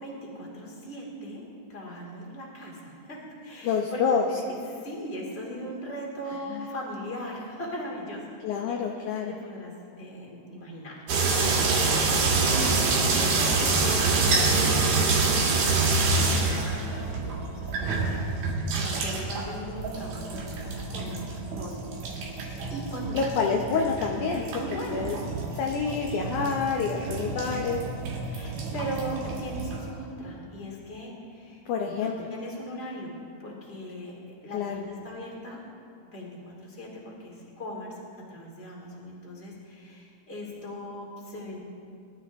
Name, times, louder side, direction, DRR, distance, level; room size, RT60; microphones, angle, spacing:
voice 1, 0.0-1.4 1.7-4.0 4.3-11.7 12.3-18.2 18.8-23.2 24.4-25.2 27.2-27.6 28.3-33.1 33.4-35.6 36.1-38.0 38.3-41.6, equal, 20° left, -2 dB, 2.3 m, -39 dB
voice 2, 3.6-4.2 6.5-6.6 8.4-9.3 23.1-24.4 24.9-25.2 25.5-27.8 31.7-32.1 34.5-34.8, left 5 dB, 75° left, 1 dB, 1.9 m, -27 dB
sound 1, 11.1-29.9, right 3 dB, 70° right, 3.7 m, -27 dB
21.5 x 12.5 x 3.6 m, 2.4 s
omnidirectional pair, 4.5 m